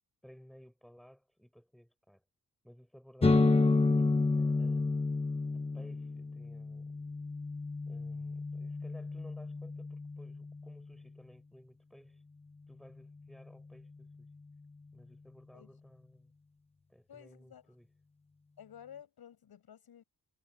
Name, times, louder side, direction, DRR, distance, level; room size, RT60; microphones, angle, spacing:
voice 1, 0.2-2.2 2.6-5.0 5.5-6.9 7.9-12.2 12.7-14.3 14.9-16.3 16.9-17.9, equal, ahead, 5.6 m, -57 dB
sound 1, 3.2-10.8, left 3 dB, 15° left, 0.8 m, -30 dB
voice 2, 17.1-17.7 18.6-20.0, left 9 dB, 75° left, 7.8 m, -53 dB
wide cardioid pair, 165°, 37 cm